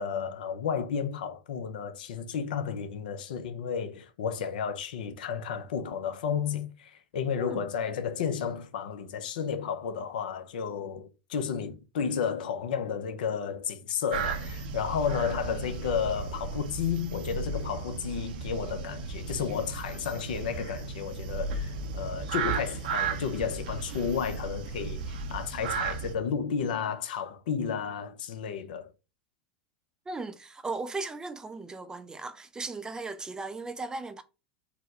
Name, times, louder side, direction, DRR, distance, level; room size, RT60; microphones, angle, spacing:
voice 1, 0.0-28.9, left 7 dB, 70° left, 0.5 m, -32 dB
sound 1, 14.1-26.1, right 5 dB, 65° right, 0.5 m, -35 dB
voice 2, 30.1-34.2, right 3 dB, 15° right, 0.3 m, -37 dB
4.0 x 2.1 x 2.7 m
hypercardioid pair, 90°, 5 cm